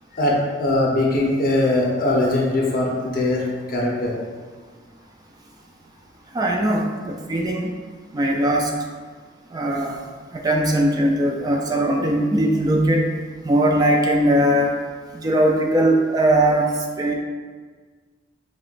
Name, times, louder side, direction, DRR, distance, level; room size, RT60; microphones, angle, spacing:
voice 1, 0.1-4.2, left 2 dB, 50° left, -3 dB, 0.9 m, -21 dB
voice 2, 6.3-7.7 8.1-8.7 9.5-10.0 10.3-13.1 13.4-14.7 15.1-17.1, right 1 dB, 20° right, 1 dB, 0.3 m, -20 dB
5.6 x 3.0 x 2.5 m, 1.5 s
head